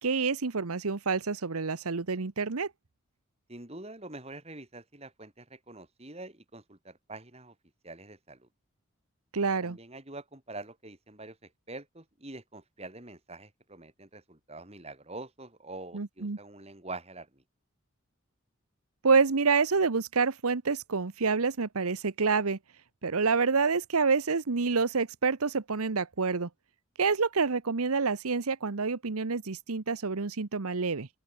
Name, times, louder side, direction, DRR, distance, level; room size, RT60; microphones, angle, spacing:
voice 1, 0.0-2.7 9.3-9.8 15.9-16.4 19.0-22.6 23.0-26.5 27.0-31.1, right 4 dB, 90° right, 1.0 m, -27 dB
voice 2, 3.5-7.5 7.8-8.5 9.6-17.4, right 2 dB, 30° right, 3.0 m, -45 dB
open air
head